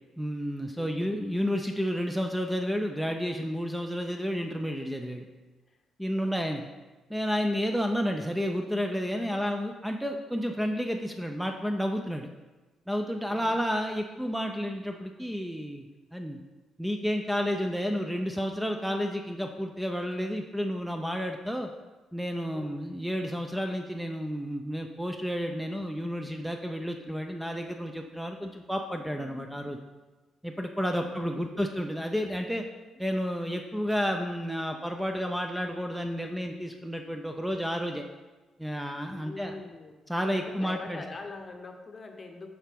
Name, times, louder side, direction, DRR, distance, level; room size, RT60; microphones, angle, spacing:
voice 1, 0.2-5.3 6.0-6.7 7.1-12.3 12.9-16.4 16.8-21.7 22.1-29.8 30.4-32.6 33.0-38.0 38.6-39.5 40.1-41.0, equal, 5° right, 4 dB, 0.4 m, -31 dB
voice 2, 0.8-1.1 5.7-5.8 6.2-6.4 9.3-9.5 13.3-13.6 22.5-22.8 30.9-31.6 32.9-33.0 39.1-40.1 40.4-42.5, left 3 dB, 35° left, 5 dB, 0.8 m, -44 dB
7.2 x 4.9 x 3.5 m, 1.2 s
cardioid pair, 90°, 0 cm